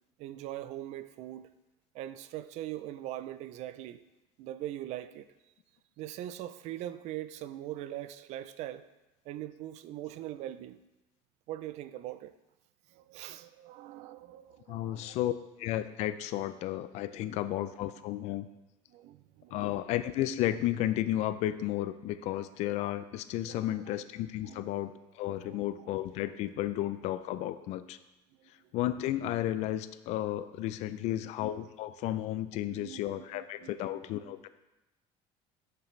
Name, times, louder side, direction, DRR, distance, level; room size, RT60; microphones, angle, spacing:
voice 1, 0.2-1.5 1.9-4.1 4.4-5.3 6.0-8.8 9.3-10.8 11.5-12.4 12.9-15.1 17.2-17.3 18.9-19.7 23.5-24.0 24.4-24.7 25.4-25.6 25.9-26.0 28.4-28.5 31.2-31.3 32.7-33.0 33.3-34.1, right 13 dB, 65° right, 0.4 m, -42 dB
voice 2, 14.7-15.3 15.6-18.5 19.5-28.0 28.7-34.5, left 13 dB, 65° left, 0.4 m, -33 dB
8.5 x 6.8 x 3.2 m
cardioid pair, 130°, 13 cm